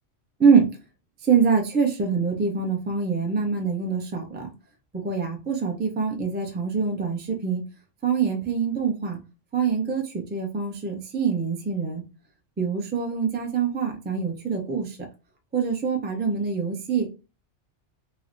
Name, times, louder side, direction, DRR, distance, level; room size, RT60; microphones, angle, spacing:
voice 1, 1.3-4.5 4.9-7.6 8.0-9.2 9.5-12.0 12.6-15.0 15.5-17.1, right 5 dB, 15° right, 2 dB, 0.3 m, -24 dB
3.1 x 2.1 x 3.7 m, 0.32 s
omnidirectional pair, 1.3 m